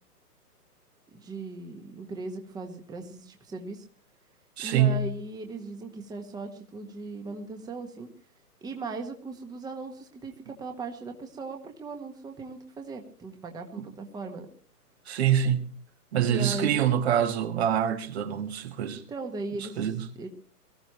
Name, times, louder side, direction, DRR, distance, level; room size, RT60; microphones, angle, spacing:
voice 1, 1.1-3.8 4.6-8.1 8.6-14.5 16.2-16.8 19.1-19.8 20.1-20.3, right 3 dB, 10° right, 1.5 m, -38 dB
voice 2, 4.6-5.0 15.1-15.7 16.1-19.0 19.6-20.1, right 9 dB, 40° right, 1.6 m, -25 dB
23.5 x 14.5 x 3.1 m
figure-of-eight pair, 125°, 47 cm